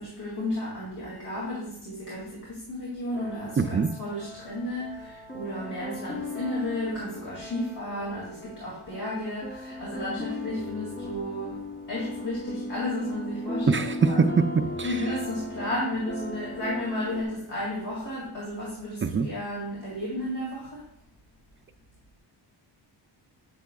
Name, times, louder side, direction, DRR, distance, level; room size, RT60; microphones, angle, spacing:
voice 1, 0.0-11.6 11.9-14.3 14.8-20.9, left 1 dB, 60° left, -6 dB, 2.3 m, -33 dB
sound 1, 3.1-17.2, left 1 dB, 25° left, 0.9 m, -37 dB
voice 2, 3.6-3.9 13.7-14.9 19.0-19.3, right 5 dB, 30° right, 8 dB, 0.4 m, -23 dB
9.1 x 6.0 x 2.3 m, 0.78 s
wide cardioid pair, 140°, 44 cm